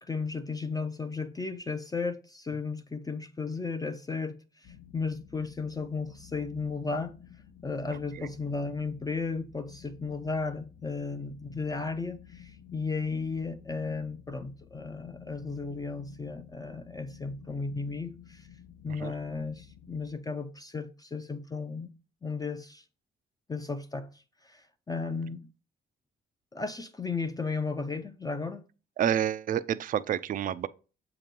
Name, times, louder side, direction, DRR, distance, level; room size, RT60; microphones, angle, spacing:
voice 1, 0.0-7.1 7.6-18.5 18.8-21.9 22.2-22.8 23.5-25.5 26.5-28.6, left 4 dB, 20° left, 0.5 m, -35 dB
sound 1, 4.6-20.2, left 9 dB, 55° left, 0.8 m, -52 dB
voice 2, 29.0-30.7, right 10 dB, 45° right, 0.4 m, -29 dB
7.3 x 2.9 x 5.2 m
cardioid pair, 90°, 20 cm